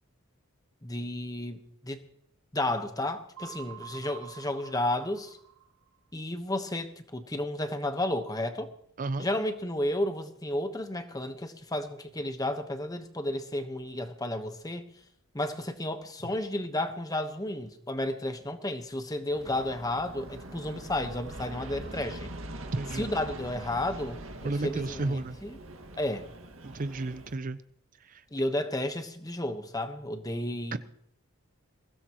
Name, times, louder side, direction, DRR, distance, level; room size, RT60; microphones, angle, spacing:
voice 1, 0.8-2.0 2.5-5.4 6.1-8.7 9.2-14.9 15.3-22.3 22.9-25.6 25.9-26.3 28.3-30.8, left 1 dB, 15° left, 1.2 m, -32 dB
sound 1, 3.4-6.0, right 12 dB, 90° right, 2.2 m, -47 dB
Aircraft, 19.3-27.4, right 1 dB, 70° right, 2.0 m, -43 dB
voice 2, 22.7-23.1 24.4-25.4 26.6-27.6 28.0-28.2 30.7-30.8, right 2 dB, 40° right, 0.5 m, -32 dB
22.5 x 17.0 x 3.1 m
head